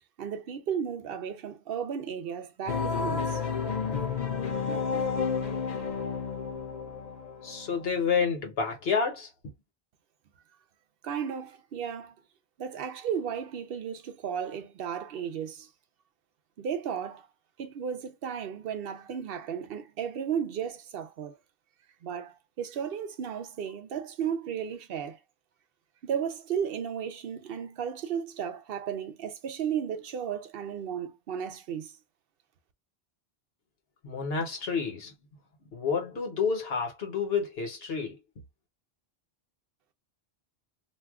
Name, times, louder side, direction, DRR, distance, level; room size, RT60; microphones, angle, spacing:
voice 1, 0.0-3.4 11.0-12.1 12.6-15.7 16.6-17.3 17.6-21.4 22.0-25.2 26.0-31.9, right 8 dB, 70° right, 0.7 m, -34 dB
sound 1, 2.7-7.8, left 5 dB, 50° left, 0.8 m, -31 dB
voice 2, 7.4-9.5 34.0-35.1 35.7-38.2, left 5 dB, 70° left, 1.2 m, -29 dB
2.6 x 2.3 x 3.5 m
omnidirectional pair, 1.0 m